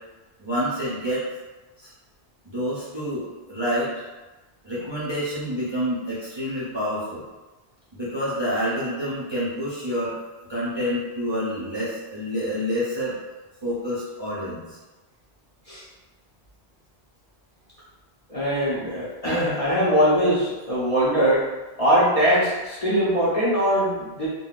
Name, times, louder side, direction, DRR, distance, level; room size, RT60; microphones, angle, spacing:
voice 1, 0.4-1.2 1.8-1.9 2.4-3.9 4.6-7.3 7.9-10.2 10.5-13.2 13.6-14.8, equal, 30° right, -10 dB, 0.5 m, -28 dB
voice 2, 18.3-21.4 21.8-24.3, equal, 40° left, -9 dB, 0.6 m, -21 dB
3.4 x 2.2 x 2.3 m, 1.1 s
omnidirectional pair, 1.2 m